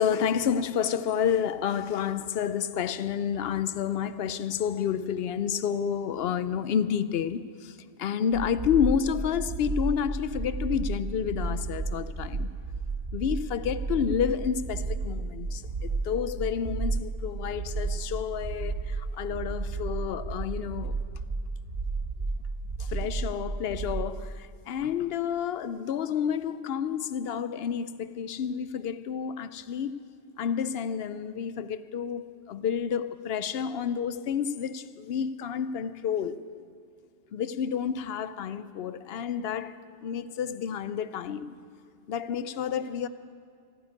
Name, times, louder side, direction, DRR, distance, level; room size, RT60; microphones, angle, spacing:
voice 1, 0.0-12.5 13.1-20.9 22.8-30.0 30.4-36.4 37.3-41.5 42.1-43.1, left 8 dB, 65° left, 0.8 m, -30 dB
sound 1, 8.3-24.2, right 3 dB, 55° right, 1.5 m, -33 dB
14.5 x 9.6 x 9.5 m
omnidirectional pair, 1.2 m